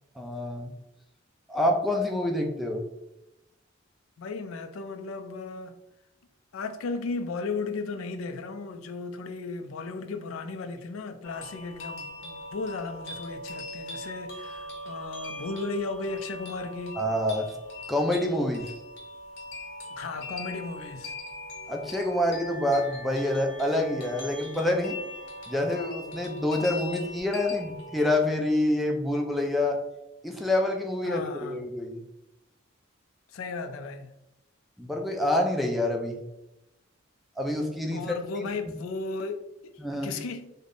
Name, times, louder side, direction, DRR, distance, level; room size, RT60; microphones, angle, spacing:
voice 1, 0.2-0.7 1.5-2.8 17.0-17.5 17.9-18.7 21.7-25.0 25.5-29.8 30.2-32.0 34.8-36.2 37.4-38.1 39.8-40.1, left 1 dB, ahead, 0.4 m, -27 dB
voice 2, 4.2-5.8 6.5-17.0 20.0-21.1 31.0-31.6 33.3-34.1 37.9-39.4 40.0-40.5, left 3 dB, 90° left, 0.4 m, -35 dB
sound 1, 11.2-28.1, left 1 dB, 60° left, 0.8 m, -41 dB
3.4 x 2.1 x 3.7 m
head